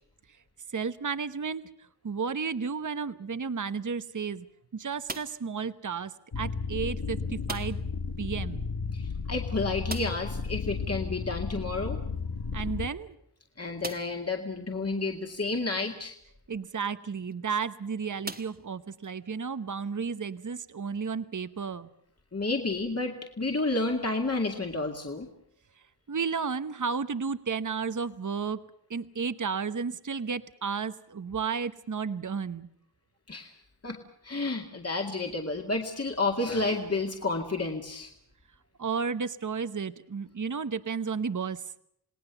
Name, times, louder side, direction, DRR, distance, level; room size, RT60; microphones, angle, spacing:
voice 1, 0.7-4.5 4.7-7.8 8.2-8.7 12.5-13.2 16.5-21.9 26.1-28.6 28.9-32.7 38.8-41.6, right 5 dB, 50° right, 13 dB, 1.0 m, -33 dB
sound 1, 5.0-5.6 7.4-8.0 8.3-8.4 8.7-8.8 9.8-10.4 12.2-12.3 12.9-13.0 13.8-14.3 15.0-15.1 17.1-17.3 18.2-19.1, right 2 dB, 25° right, 1.3 m, -40 dB
sound 2, 6.3-12.9, left 5 dB, 80° left, 1.6 m, -33 dB
voice 2, 8.9-12.0 13.6-16.1 22.3-25.3 33.3-33.5 33.8-34.0 34.2-38.1, left 3 dB, 40° left, 2 dB, 2.2 m, -30 dB
28.5 x 19.0 x 7.0 m, 0.71 s
wide cardioid pair, 85°, 39 cm